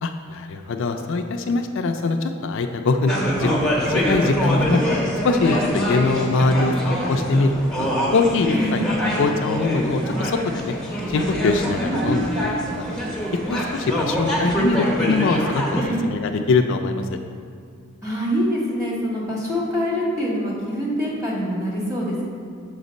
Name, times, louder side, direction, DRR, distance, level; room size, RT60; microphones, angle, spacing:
voice 1, 0.0-4.8 5.2-7.5 7.8-8.8 9.2-10.8 11.1-12.2 12.8-12.9 13.5-17.1, left 3 dB, 60° left, 5 dB, 0.4 m, -22 dB
sound 1, 3.1-15.8, equal, 5° left, 1.0 m, -25 dB
voice 2, 11.8-12.6 15.8-16.0 18.0-22.3, equal, 15° right, -5 dB, 1.7 m, -25 dB
7.2 x 4.0 x 5.2 m, 2.4 s
head